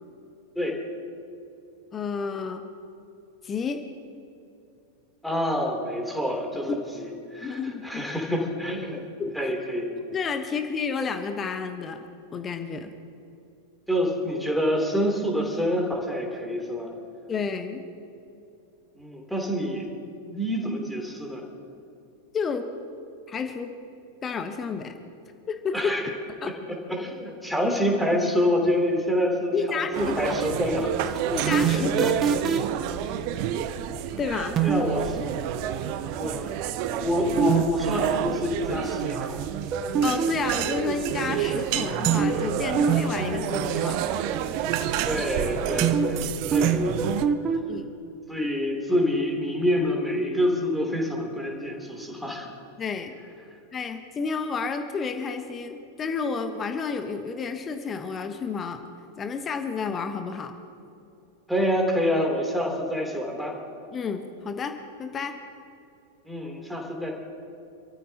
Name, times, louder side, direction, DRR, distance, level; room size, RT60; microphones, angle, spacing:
voice 1, 1.9-2.6 3.4-3.8 7.4-8.0 9.2-9.5 10.1-12.0 12.3-12.9 17.3-17.8 22.3-22.7 23.3-23.8 24.2-24.9 25.5-25.9 26.4-26.6 29.5-30.1 31.3-32.2 34.2-34.6 40.0-44.0 47.7-47.9 52.8-53.1 53.7-58.8 59.2-60.5 63.9-65.4, left 5 dB, 25° left, 6 dB, 1.1 m, -30 dB
voice 2, 5.2-9.0 9.3-9.9 13.9-16.9 18.9-21.4 25.7-26.0 26.7-31.0 34.6-35.4 36.1-36.5 37.0-39.5 45.0-47.1 48.3-52.5 61.5-63.5 66.2-67.1, equal, ahead, 0 dB, 3.1 m, -27 dB
sound 1, 29.9-47.3, right 10 dB, 45° right, 0.7 m, -29 dB
sound 2, 31.2-32.8 34.6-35.0 37.4-37.6 37.9-38.0 39.7-40.5 42.1-42.5 42.8-43.0 43.3-43.4 45.8-46.2 46.5-47.6, right 7 dB, 25° right, 1.1 m, -23 dB
28.0 x 13.5 x 2.9 m, 2.7 s
figure-of-eight pair, 90°, 0 cm